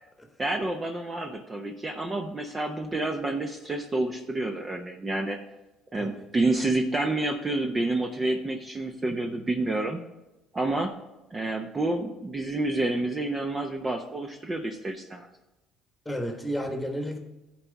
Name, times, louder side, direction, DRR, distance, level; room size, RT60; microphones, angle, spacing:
voice 1, 0.4-5.4 5.9-10.0 10.5-10.9 11.3-15.3, right 2 dB, 20° right, 3 dB, 0.8 m, -29 dB
voice 2, 6.0-6.3 16.0-17.2, equal, 10° left, 4 dB, 1.4 m, -32 dB
14.0 x 4.6 x 4.1 m, 0.99 s
cardioid pair, 115°, 0 cm